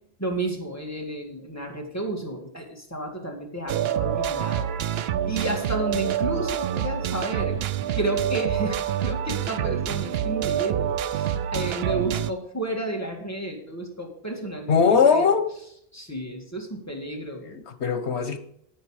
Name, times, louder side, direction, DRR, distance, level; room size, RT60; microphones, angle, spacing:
voice 1, 0.2-7.6 7.9-15.3 15.9-17.6, right 1 dB, 15° left, 2.0 m, -32 dB
sound 1, 3.7-12.3, right 9 dB, 70° right, 0.8 m, -27 dB
voice 2, 14.7-15.5 17.4-18.4, left 6 dB, 90° left, 1.3 m, -20 dB
9.7 x 9.4 x 4.8 m
omnidirectional pair, 1.1 m